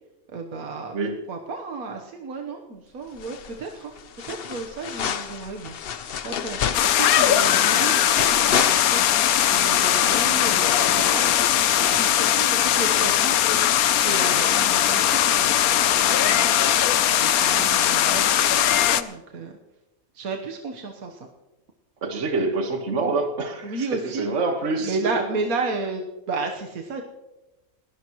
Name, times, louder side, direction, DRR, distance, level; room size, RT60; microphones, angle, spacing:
voice 1, 0.3-0.9 1.3-3.9 4.3-5.8 6.2-9.0 9.4-11.3 11.8-13.4 14.0-16.6 17.1-19.6 20.1-21.3 23.6-24.3 24.8-27.0, right 3 dB, 80° right, 2 dB, 1.6 m, -33 dB
sound 1, 3.2-3.7 4.0-9.3 9.6-9.7, left 8 dB, 50° left, 0.8 m, -29 dB
sound 2, 6.7-19.0, left 11 dB, 85° left, 1.2 m, -20 dB
voice 2, 22.0-25.0, right 3 dB, 55° right, 4 dB, 1.8 m, -26 dB
30.0 x 11.5 x 3.1 m, 1.0 s
omnidirectional pair, 1.5 m